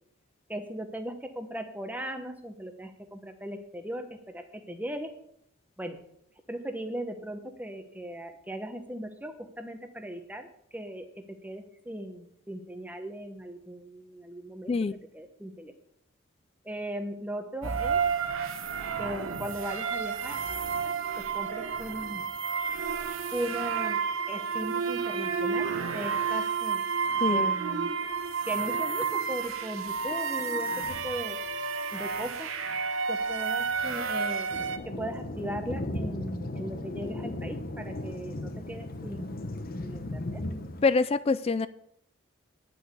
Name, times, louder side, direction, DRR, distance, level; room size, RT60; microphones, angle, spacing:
voice 1, 0.5-5.1 5.8-6.0 6.5-11.0 11.4-14.8 15.1-15.7 16.6-18.0 19.0-20.4 20.8-22.2 23.3-26.8 27.3-27.9 28.5-31.4 31.9-32.5 33.1-34.5 34.8-39.4 39.8-40.4, right 1 dB, 10° right, 6 dB, 1.0 m, -38 dB
voice 2, 14.7-15.0 27.2-27.5 40.8-41.7, left 4 dB, 30° left, 16 dB, 0.3 m, -25 dB
sound 1, 17.6-34.8, right 6 dB, 85° right, 1.0 m, -31 dB
Thunder, 34.5-40.9, left 1 dB, 45° left, 0.9 m, -36 dB
10.0 x 6.3 x 8.1 m, 0.73 s
head